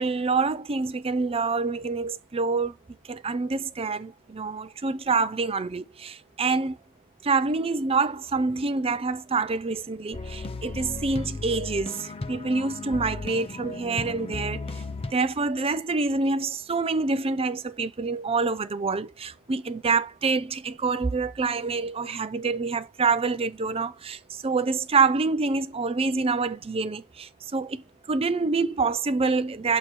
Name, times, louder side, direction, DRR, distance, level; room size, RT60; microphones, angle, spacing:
voice 1, 0.0-2.8 3.1-6.8 7.2-14.6 15.1-29.8, right 4 dB, 25° right, 0.5 m, -26 dB
sound 1, 10.1-15.1, left 3 dB, 25° left, 0.5 m, -35 dB
7.4 x 3.2 x 4.1 m
head